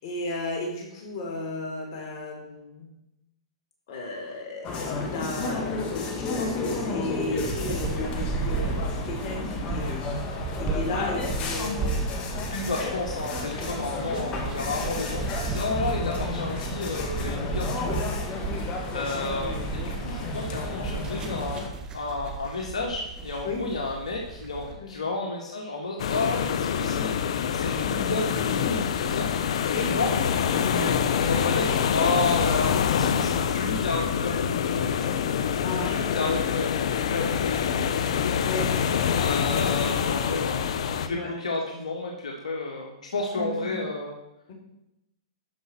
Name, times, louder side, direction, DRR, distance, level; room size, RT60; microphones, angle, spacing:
voice 1, 0.0-2.9 3.9-5.7 6.2-10.1 10.6-12.1 13.6-13.7 14.1-14.2 17.8-18.2 23.4-23.6 24.8-24.9 29.7-29.9 35.6-36.0 38.4-38.8 41.1-41.3 43.3-43.7, left 2 dB, 50° left, 0 dB, 3.9 m, -34 dB
sound 1, 4.6-21.7, left 3 dB, 30° left, 1.9 m, -32 dB
sound 2, 7.3-24.7, right 4 dB, 20° right, 1.7 m, -34 dB
voice 2, 12.5-17.9 18.9-21.6 21.9-27.1 27.5-29.3 29.7-35.2 35.7-38.0 39.1-44.1, left 3 dB, 85° left, 0 dB, 1.9 m, -31 dB
sound 3, 26.0-41.1, left 7 dB, 65° left, 0.9 m, -26 dB
12.5 x 5.5 x 5.9 m, 0.87 s
hypercardioid pair, 130°, 3 cm